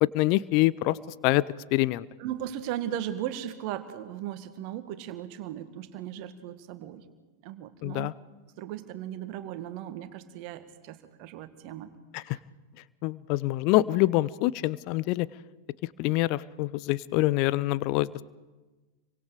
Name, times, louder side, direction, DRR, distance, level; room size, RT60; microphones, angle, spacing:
voice 1, 0.0-1.0 1.2-1.4 1.7-2.1 7.8-8.1 12.1-12.4 13.0-15.3 16.0-18.1, left 18 dB, 45° left, 20 dB, 0.6 m, -25 dB
voice 2, 2.2-7.1 7.4-8.1 8.6-11.9 12.2-12.4, right 11 dB, 45° right, 10 dB, 1.8 m, -37 dB
29.5 x 24.0 x 5.1 m, 1.2 s
figure-of-eight pair, 90°, 0 cm